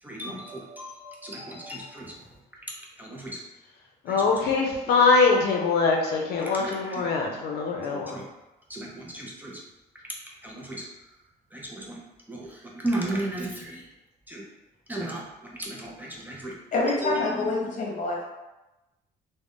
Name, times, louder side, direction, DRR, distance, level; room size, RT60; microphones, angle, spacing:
voice 1, 0.0-2.2 2.6-3.4 4.1-4.5 4.9-5.0 6.4-7.1 7.8-8.2 8.7-9.6 10.0-10.2 10.4-10.9 11.5-12.0 12.3-13.9 14.3-14.4 14.9-16.6 16.9-17.7, right 1 dB, 10° right, -3 dB, 0.5 m, -35 dB
voice 2, 4.1-8.2, left 4 dB, 75° left, 0 dB, 0.5 m, -23 dB
voice 3, 16.7-18.2, left 3 dB, 50° left, -2 dB, 0.9 m, -27 dB
2.4 x 2.1 x 3.5 m, 1.0 s
cardioid pair, 110°, 17 cm